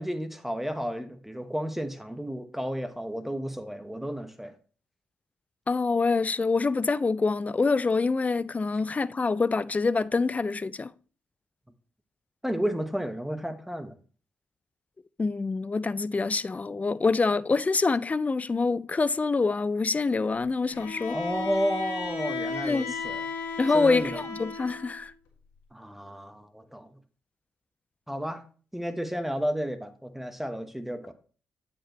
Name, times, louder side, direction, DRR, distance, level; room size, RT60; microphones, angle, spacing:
voice 1, 0.0-4.5 12.4-13.9 21.1-23.2 23.7-24.2 25.7-26.9 28.1-28.4 28.7-31.1, equal, 5° right, 0.9 m, -32 dB
voice 2, 5.7-10.9 15.2-21.2 22.6-22.9 23.6-25.1, left 4 dB, 25° left, 0.4 m, -26 dB
Bowed string instrument, 20.7-25.0, left 5 dB, 90° left, 1.5 m, -35 dB
8.5 x 5.2 x 3.0 m
supercardioid pair, 50°, 5 cm